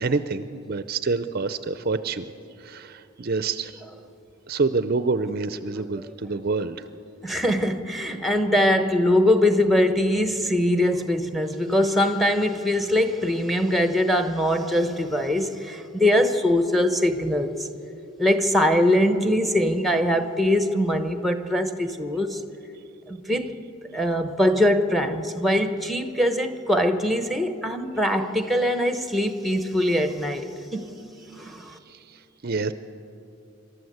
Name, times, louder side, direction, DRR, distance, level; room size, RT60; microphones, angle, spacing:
voice 1, 0.0-2.3 2.6-3.8 4.5-6.9 31.9-32.7, right 4 dB, 45° right, 12 dB, 0.5 m, -27 dB
voice 2, 7.2-17.7 18.2-22.4 23.1-23.6 23.9-30.9 31.2-31.8, left 1 dB, ahead, 8 dB, 1.0 m, -22 dB
26.5 x 12.5 x 7.9 m, 2.8 s
head